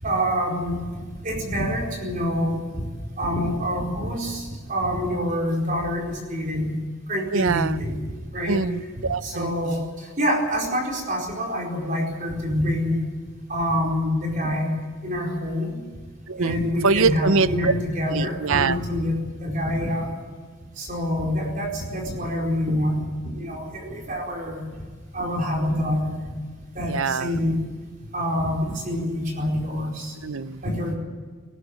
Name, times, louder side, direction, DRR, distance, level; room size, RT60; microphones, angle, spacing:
voice 1, 0.0-2.8 3.2-6.8 7.1-8.0 8.3-8.6 9.2-13.1 13.5-14.7 15.0-15.9 16.4-20.1 20.8-24.6 25.1-26.2 26.7-27.6 28.1-30.1 30.6-30.9, equal, 40° right, -1 dB, 4.6 m, -26 dB
voice 2, 7.3-7.8 8.5-9.8 16.3-16.6 16.8-17.7 18.1-18.8 26.9-27.3 30.2-30.6, right 4 dB, 70° right, 15 dB, 0.6 m, -23 dB
20.0 x 19.0 x 8.4 m, 1.5 s
head